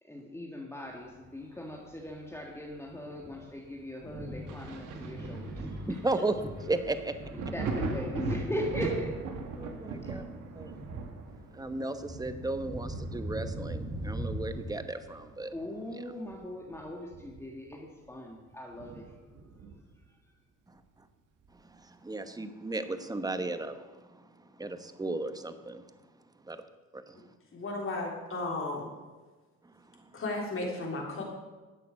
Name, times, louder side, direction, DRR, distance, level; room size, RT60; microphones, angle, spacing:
voice 1, 0.0-6.2 7.3-9.2 15.5-19.2 20.1-20.2, equal, 10° left, -2 dB, 1.8 m, -39 dB
Thunder, 1.1-14.7, right 1 dB, 35° right, 4.4 m, -42 dB
Thunder 2, 4.5-15.8 16.2-17.7 18.1-18.2 18.7-20.0 21.4-21.5, right 3 dB, 85° right, 1.7 m, -40 dB
voice 2, 5.9-6.3 6.7-7.2 9.6-10.2 10.5-10.7 11.5-15.5 20.7-20.8 21.6-24.2 24.6-25.8 26.5-26.6 26.9-27.2, right 2 dB, 10° right, 9 dB, 1.0 m, -35 dB
voice 3, 27.5-28.9 30.1-31.2, left 2 dB, 45° left, -1 dB, 3.6 m, -34 dB
12.0 x 8.5 x 6.4 m, 1.3 s
cardioid pair, 90°, 30 cm